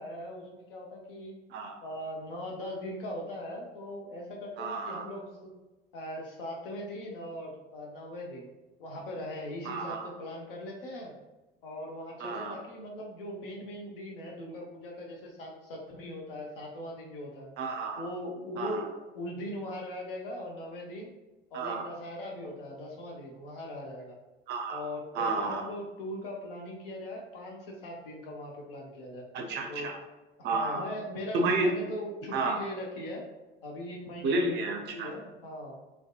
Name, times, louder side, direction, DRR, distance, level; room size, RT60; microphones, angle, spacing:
voice 1, 0.0-1.4 1.8-5.5 5.9-8.5 8.8-11.1 11.6-17.5 18.0-21.1 21.5-24.2 24.7-29.3 29.7-29.9 30.5-33.3 33.6-34.6 34.9-35.8, left 1 dB, 70° left, -1 dB, 0.7 m, -40 dB
voice 2, 4.6-5.1 9.7-10.1 12.2-12.6 17.6-18.1 18.6-18.8 21.5-21.8 24.5-24.8 25.1-25.6 29.3-29.9 30.4-30.8 31.3-31.7 32.3-32.6 34.2-35.1, right 3 dB, 35° right, 3 dB, 0.5 m, -31 dB
2.6 x 2.1 x 2.3 m, 1.1 s
figure-of-eight pair, 60°, 29 cm